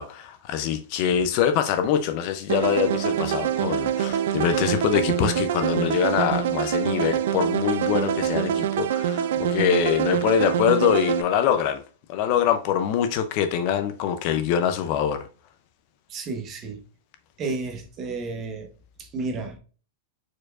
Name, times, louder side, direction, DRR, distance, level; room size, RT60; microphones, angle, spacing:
voice 1, 0.0-11.8 12.1-15.3, left 8 dB, 35° left, 0.4 m, -24 dB
sound 1, 2.5-11.2, right 9 dB, 60° right, 0.4 m, -25 dB
voice 2, 16.1-16.8 17.4-18.7 19.1-19.5, right 3 dB, 20° right, 1.0 m, -31 dB
4.6 x 4.5 x 2.4 m
supercardioid pair, 170°, 0 cm